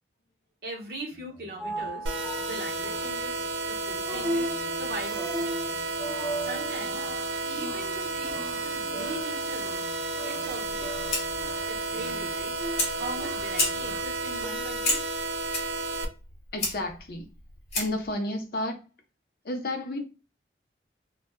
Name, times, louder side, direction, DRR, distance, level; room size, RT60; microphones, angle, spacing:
voice 1, 0.6-2.1 2.4-7.1 7.4-9.9 10.2-11.3 11.7-12.6 12.9-15.0, right 1 dB, 55° right, 0.9 m, -40 dB
sound 1, 1.1-14.0, right 1 dB, 5° right, 0.4 m, -38 dB
sound 2, 2.1-16.1, right 2 dB, 80° right, 0.4 m, -32 dB
Fire, 10.6-18.1, left 2 dB, 35° left, 0.9 m, -34 dB
voice 2, 16.5-17.3 17.7-18.8 19.4-20.0, left 1 dB, 55° left, 0.5 m, -31 dB
2.2 x 2.1 x 3.0 m
head